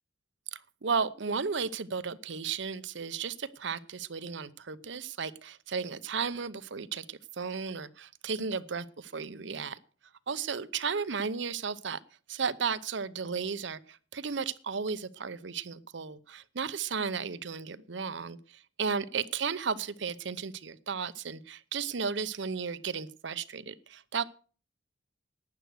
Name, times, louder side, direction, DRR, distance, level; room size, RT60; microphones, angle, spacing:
voice 1, 0.5-9.8 10.3-12.0 12.3-24.2, right 5 dB, 65° right, 15 dB, 0.7 m, -34 dB
12.0 x 9.2 x 6.4 m, 0.39 s
head